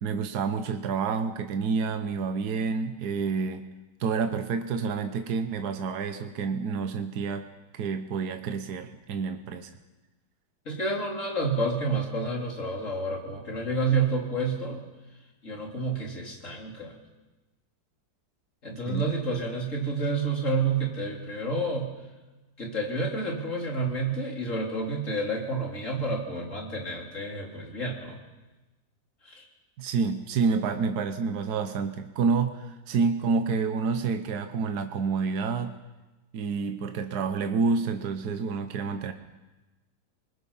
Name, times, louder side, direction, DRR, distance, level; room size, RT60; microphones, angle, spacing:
voice 1, 0.0-3.7 4.0-7.5 7.7-9.7 18.7-19.0 29.8-35.7 36.3-39.1, right 5 dB, 70° right, 7 dB, 1.6 m, -28 dB
voice 2, 10.7-14.8 15.4-16.9 18.6-21.9 22.6-28.2 29.3-29.4, right 2 dB, 45° left, -1 dB, 3.9 m, -29 dB
27.0 x 20.5 x 5.6 m, 1.1 s
omnidirectional pair, 1.8 m